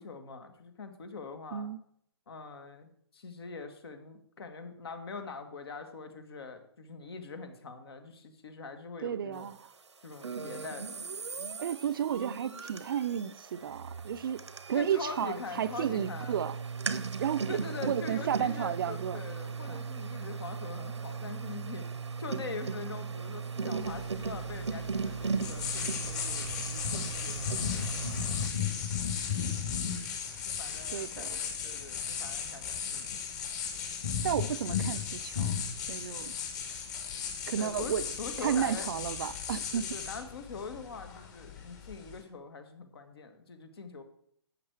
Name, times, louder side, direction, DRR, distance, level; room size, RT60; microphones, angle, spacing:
voice 1, 0.0-1.7 2.3-9.5 10.0-11.1 14.7-16.4 17.5-21.9 22.2-27.9 30.5-33.2 37.5-37.9 38.2-38.9 39.7-44.0, left 4 dB, 60° left, 1.8 m, -43 dB
voice 2, 9.0-9.7 11.6-16.6 17.2-19.2 19.7-19.8 30.9-31.4 34.2-35.6 35.9-36.3 37.5-38.1 38.4-39.9, right 9 dB, 50° right, 0.5 m, -32 dB
sound 1, 10.2-28.5, right 5 dB, 80° right, 0.9 m, -37 dB
sound 2, 23.8-42.2, left 7 dB, 40° left, 2.4 m, -36 dB
12.0 x 8.3 x 4.7 m
figure-of-eight pair, 135°, 14 cm